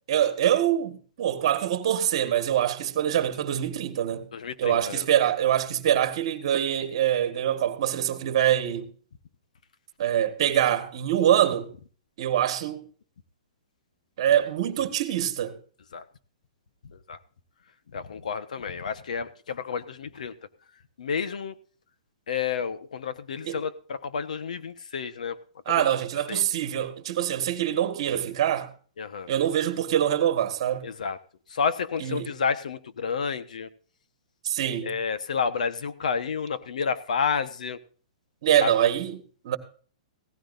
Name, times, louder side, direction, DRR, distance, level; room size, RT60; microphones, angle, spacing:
voice 1, 0.1-4.3 4.6-8.9 10.0-11.7 12.2-12.8 14.2-15.6 23.4-23.6 25.6-28.7 29.3-30.9 32.0-32.3 34.4-34.9 38.4-39.6, right 11 dB, 40° right, 1.6 m, -24 dB
voice 2, 4.3-5.1 15.9-16.0 16.9-17.2 17.9-20.3 21.0-21.5 22.3-25.4 25.8-25.9 26.3-26.4 29.0-29.3 30.8-31.2 31.5-33.7 34.8-37.8 38.6-38.7, left 6 dB, 75° left, 1.3 m, -30 dB
16.5 x 14.5 x 2.6 m
hypercardioid pair, 175°, 4 cm